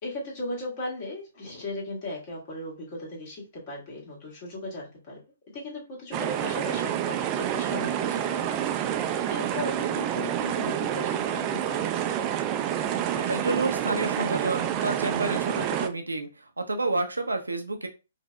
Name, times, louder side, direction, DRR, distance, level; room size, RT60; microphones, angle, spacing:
voice 1, 0.0-5.2 5.5-12.1, left 1 dB, 40° left, -3 dB, 1.8 m, -37 dB
sound 1, 6.1-15.9, right 10 dB, 30° right, 0.4 m, -28 dB
voice 2, 13.2-16.3 16.6-17.9, right 2 dB, 85° right, 5 dB, 0.7 m, -29 dB
5.0 x 2.7 x 2.2 m, 0.29 s
figure-of-eight pair, 125°, 0 cm